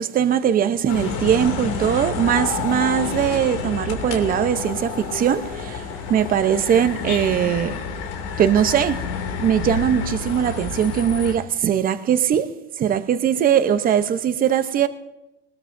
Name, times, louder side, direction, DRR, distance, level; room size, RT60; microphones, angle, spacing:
voice 1, 0.0-7.8 8.4-9.0 9.4-12.5 12.8-14.9, right 9 dB, 25° right, 0.8 m, -20 dB
sound 1, 0.9-11.3, left 5 dB, 85° left, 2.7 m, -29 dB
21.0 x 19.5 x 2.6 m
supercardioid pair, 140°, 33 cm